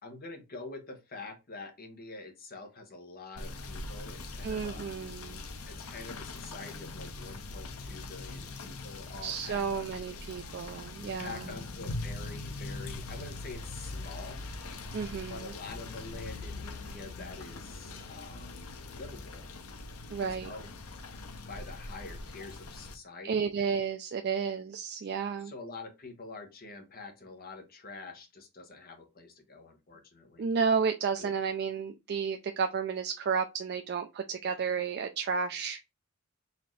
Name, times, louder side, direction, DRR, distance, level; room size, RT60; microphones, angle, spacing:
voice 1, 0.0-4.9 5.7-10.2 11.2-14.4 15.2-19.5 20.2-20.7 21.5-23.5 25.4-30.5 31.2-31.3, left 3 dB, 45° left, 1.0 m, -46 dB
Rain / Motor vehicle (road), 3.4-22.9, left 3 dB, 85° left, 0.7 m, -42 dB
voice 2, 4.4-5.4 9.2-11.5 14.9-15.5 20.1-20.5 23.2-25.5 30.4-35.8, right 6 dB, 50° right, 0.3 m, -32 dB
4.1 x 2.8 x 3.1 m
head